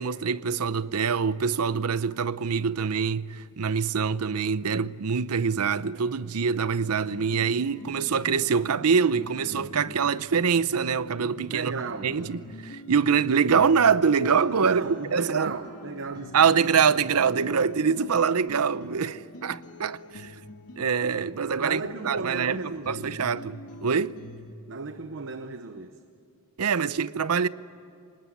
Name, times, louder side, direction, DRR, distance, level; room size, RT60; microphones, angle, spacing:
voice 1, 0.0-11.7 12.0-14.8 15.1-15.5 16.3-20.3 20.8-22.6 22.9-24.2 26.6-27.5, right 6 dB, 75° right, 0.7 m, -24 dB
sound 1, 7.0-24.5, left 1 dB, 85° left, 2.0 m, -45 dB
voice 2, 11.4-12.2 14.6-16.7 21.6-23.3 24.7-26.0, right 3 dB, 60° right, 0.9 m, -34 dB
25.5 x 20.0 x 9.8 m
head